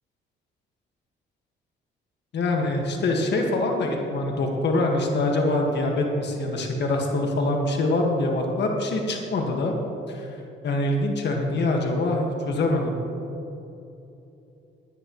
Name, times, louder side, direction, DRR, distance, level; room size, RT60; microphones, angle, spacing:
voice 1, 2.3-9.7 10.1-10.3 10.6-12.9, left 2 dB, 60° left, 1 dB, 1.8 m, -24 dB
16.5 x 10.5 x 3.2 m, 2.9 s
cardioid pair, 90°, 20 cm